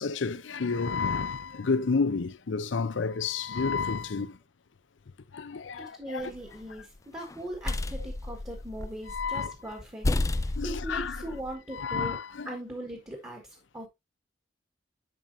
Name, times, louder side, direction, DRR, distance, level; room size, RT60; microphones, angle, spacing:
voice 1, 0.0-4.3 5.3-6.2 9.1-9.5 10.6-11.2 11.7-12.5, left 4 dB, 85° left, 0.6 m, -30 dB
voice 2, 5.8-12.2 12.4-13.4 13.7-13.9, right 1 dB, 20° right, 1.6 m, -40 dB
sound 1, 6.2-6.8 7.3-9.4 9.7-9.8 10.0-11.5, left 2 dB, 15° left, 0.4 m, -32 dB
10.5 x 4.4 x 2.6 m
head